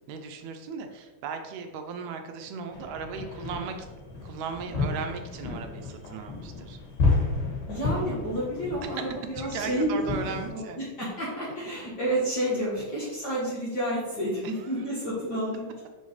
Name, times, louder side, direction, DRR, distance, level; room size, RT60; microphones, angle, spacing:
voice 1, 0.1-3.8 4.2-6.8 8.8-9.1 9.4-10.9 14.4-14.7, right 6 dB, 80° right, 5 dB, 1.8 m, -37 dB
sound 1, 2.7-10.5, left 3 dB, 75° left, 3.1 m, -31 dB
voice 2, 7.7-10.0 10.5-15.7, equal, 50° left, -6 dB, 1.3 m, -30 dB
5.5 x 5.5 x 3.1 m, 1.3 s
omnidirectional pair, 3.3 m